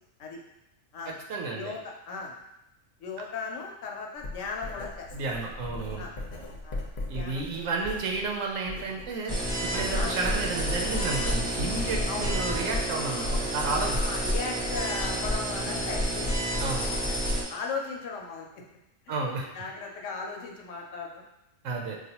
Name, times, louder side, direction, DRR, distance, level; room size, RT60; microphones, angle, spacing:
voice 1, 1.0-1.7 5.1-6.0 7.1-9.3 9.6-14.0 16.6-16.9 19.1-19.5 21.6-22.0, right 3 dB, 90° right, 1 dB, 1.0 m, -32 dB
voice 2, 1.6-2.4 3.0-5.1 6.0-6.1 6.6-6.8 7.2-7.9 9.9-10.2 12.1-12.3 13.8-16.3 17.1-17.2 17.5-18.6 19.1-19.2 19.5-21.2, left 4 dB, 75° left, 0 dB, 1.0 m, -37 dB
Writing, 4.2-9.1 9.4-14.1, left 2 dB, 50° left, 0.7 m, -39 dB
sound 1, 9.3-17.4, equal, 25° right, 0.6 m, -29 dB
4.8 x 2.4 x 2.9 m, 0.88 s
omnidirectional pair, 1.3 m